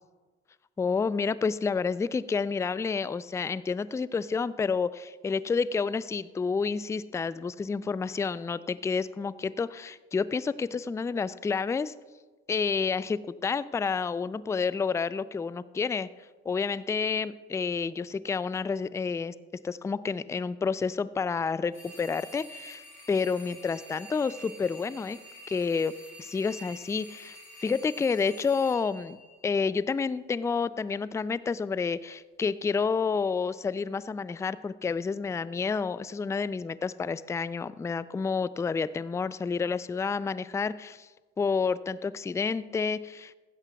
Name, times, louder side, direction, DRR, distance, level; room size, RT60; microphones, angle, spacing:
voice 1, 0.8-11.9 12.5-16.1 16.5-19.3 19.6-22.8 23.1-25.2 25.5-25.9 26.2-29.2 29.4-41.1 41.4-43.3, left 5 dB, 10° left, 17 dB, 0.3 m, -29 dB
sound 1, 21.7-29.9, equal, 90° left, 4.0 m, -48 dB
15.5 x 12.0 x 2.3 m, 1.3 s
hypercardioid pair, 55°, 31 cm